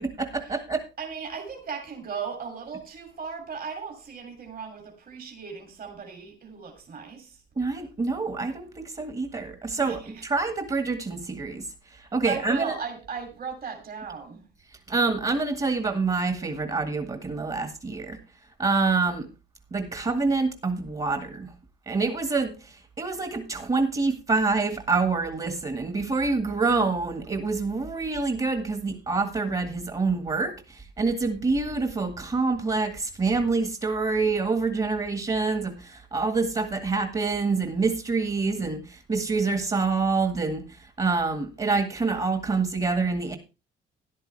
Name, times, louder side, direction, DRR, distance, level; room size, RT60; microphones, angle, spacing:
voice 1, 0.0-0.8 7.6-12.7 14.9-18.2 18.6-19.3 19.7-21.5 21.8-43.4, right 4 dB, 30° right, 1.8 m, -26 dB
voice 2, 1.0-7.4 9.8-10.3 12.0-14.5, right 6 dB, 50° right, 2.9 m, -37 dB
13.0 x 10.5 x 3.3 m
cardioid pair, 90°, 20 cm